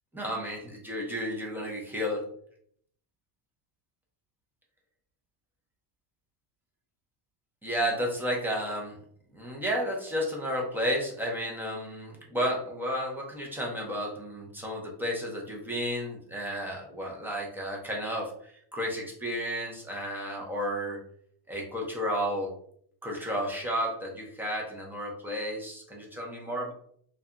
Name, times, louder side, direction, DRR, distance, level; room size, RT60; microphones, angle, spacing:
voice 1, 0.1-2.2 7.6-8.9 9.3-18.3 18.7-21.0 21.5-22.5 23.0-26.7, equal, 5° right, -2 dB, 0.4 m, -32 dB
2.7 x 2.2 x 2.4 m, 0.64 s
cardioid pair, 130°, 49 cm